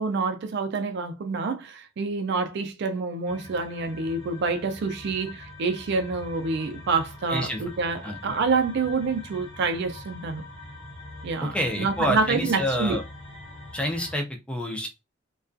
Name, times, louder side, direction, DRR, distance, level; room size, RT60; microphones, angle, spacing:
voice 1, 0.0-10.4 11.2-13.0, right 4 dB, 60° right, 0.4 m, -27 dB
sound 1, 3.3-14.2, left 2 dB, 30° left, 0.9 m, -43 dB
voice 2, 7.3-7.6 8.0-8.2 11.4-13.0 13.7-14.9, equal, 5° left, 0.4 m, -28 dB
2.3 x 2.3 x 2.5 m
head